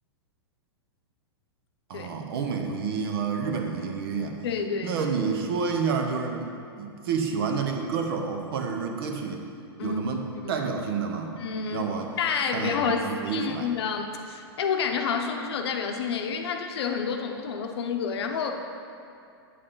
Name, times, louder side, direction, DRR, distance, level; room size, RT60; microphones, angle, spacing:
voice 1, 1.9-4.4 4.8-6.5 6.8-9.4 9.8-10.2 10.5-11.3 11.7-12.1 12.5-13.7, right 5 dB, 65° right, 3 dB, 0.9 m, -29 dB
voice 2, 4.4-5.0 9.8-10.6 11.4-11.9 12.2-18.5, left 6 dB, 75° left, 4 dB, 0.7 m, -29 dB
8.3 x 4.7 x 3.8 m, 2.5 s
hypercardioid pair, 120°, 14 cm